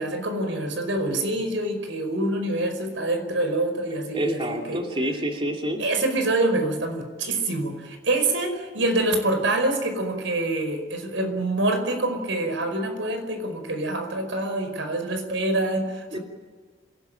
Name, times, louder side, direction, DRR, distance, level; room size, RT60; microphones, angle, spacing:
voice 1, 0.0-4.8 5.8-16.2, right 2 dB, 90° right, 6 dB, 5.1 m, -26 dB
voice 2, 4.1-5.8 16.1-16.2, right 1 dB, 30° right, 2 dB, 2.5 m, -28 dB
26.5 x 18.5 x 8.9 m, 1.5 s
head